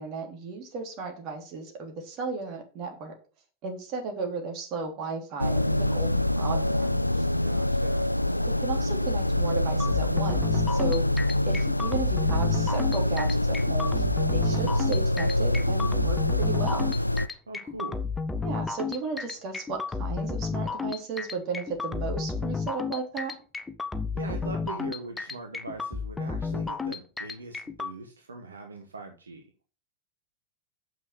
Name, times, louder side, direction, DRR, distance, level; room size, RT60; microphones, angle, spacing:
voice 1, 0.0-3.1 3.6-7.2 8.6-11.1 11.4-16.9 18.4-23.3, right 4 dB, 40° right, 3 dB, 3.3 m, -35 dB
sound 1, 5.4-17.3, left 1 dB, 85° left, 0.3 m, -25 dB
voice 2, 7.4-8.1 17.5-18.0 24.1-29.4, right 3 dB, 75° right, 4 dB, 1.3 m, -41 dB
sound 2, 9.8-27.9, left 4 dB, 10° left, 0.9 m, -32 dB
7.4 x 6.1 x 6.5 m, 0.36 s
figure-of-eight pair, 90°, 0 cm